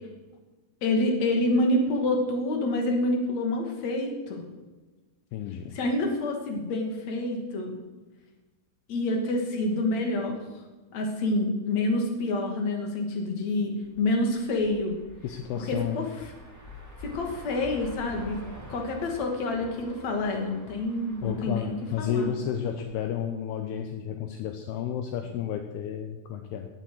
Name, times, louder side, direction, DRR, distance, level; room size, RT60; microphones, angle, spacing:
voice 1, 0.8-4.4 5.7-7.8 8.9-10.4 10.9-15.0 15.6-16.3 17.0-18.4 18.7-21.7 22.0-22.3, left 2 dB, 45° left, 2 dB, 3.4 m, -27 dB
voice 2, 5.3-5.8 15.2-16.0 21.2-26.7, left 8 dB, 75° left, 5 dB, 2.9 m, -32 dB
sound 1, 13.8-23.1, left 1 dB, 5° right, 1.6 m, -46 dB
19.0 x 9.1 x 7.9 m, 1.2 s
omnidirectional pair, 4.8 m